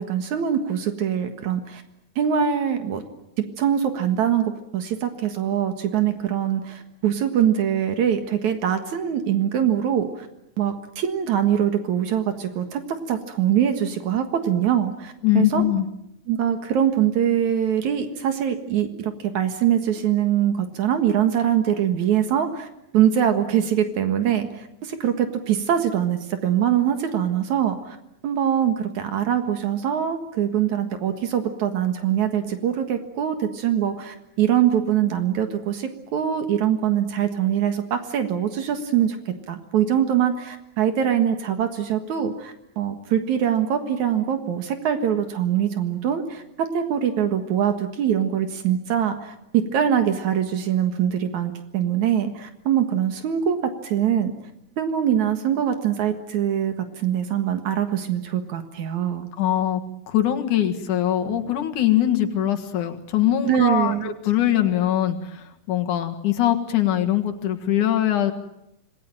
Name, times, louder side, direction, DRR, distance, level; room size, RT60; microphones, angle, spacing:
voice 1, 0.0-1.8 2.2-3.0 3.6-10.3 10.6-12.8 13.1-15.6 16.3-22.7 22.9-28.0 28.2-39.2 39.5-54.3 54.8-59.3 63.4-64.1, right 9 dB, 75° right, 7 dB, 3.0 m, -23 dB
voice 2, 15.2-15.9 59.4-59.8 60.1-68.3, left 12 dB, 90° left, 4 dB, 3.1 m, -22 dB
27.5 x 19.5 x 9.1 m, 0.84 s
omnidirectional pair, 3.4 m